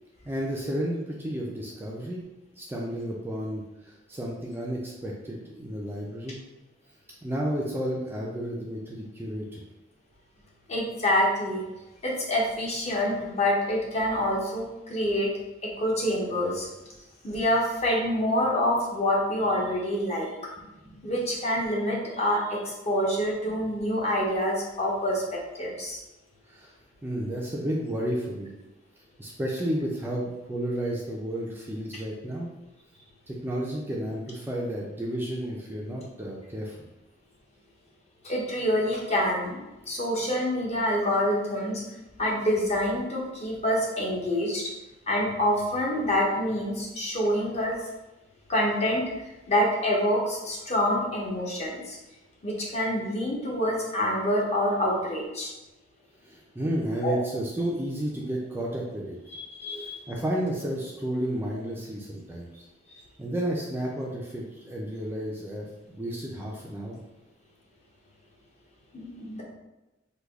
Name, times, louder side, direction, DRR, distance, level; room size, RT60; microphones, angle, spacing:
voice 1, 0.3-2.2 2.6-6.4 7.2-9.6 20.9-21.0 26.5-26.7 27.0-28.5 29.2-32.5 33.3-36.8 56.2-59.2 59.8-62.6 63.2-67.0, right 1 dB, 10° right, -3 dB, 0.4 m, -32 dB
voice 2, 10.7-11.6 12.0-15.3 15.6-16.7 17.2-20.3 21.0-26.0 38.2-41.8 42.2-44.7 45.1-47.7 48.5-49.0 49.5-52.0 52.4-55.5 57.0-57.2 59.5-60.0 68.9-69.4, equal, 35° left, -3 dB, 0.8 m, -26 dB
3.3 x 2.2 x 3.5 m, 1.0 s
head